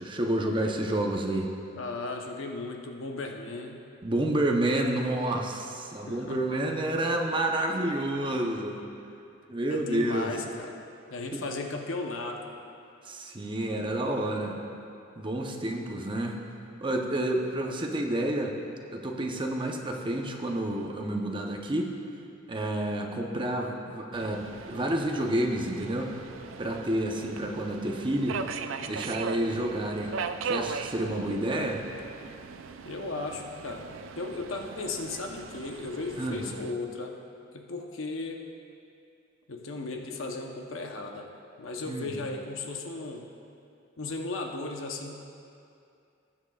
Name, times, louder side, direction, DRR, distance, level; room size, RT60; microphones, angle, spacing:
voice 1, 0.0-1.5 4.0-8.8 9.5-10.3 11.3-11.4 13.1-14.6 15.2-16.4 16.8-18.5 18.9-21.9 22.5-26.2 26.6-28.4 28.9-30.1 30.4-31.8 36.2-36.5 41.9-42.3, right 1 dB, 25° right, 1 dB, 0.8 m, -29 dB
voice 2, 1.8-3.8 6.1-6.4 9.7-10.8 11.1-12.5 32.8-33.9 34.2-37.2 37.5-38.4 39.5-41.3 41.6-43.2 44.0-45.2, left 3 dB, 85° left, 2 dB, 0.9 m, -36 dB
Subway metro underground, 24.1-36.7, right 5 dB, 75° right, 0.4 m, -39 dB
19.5 x 7.5 x 2.4 m, 2.6 s
head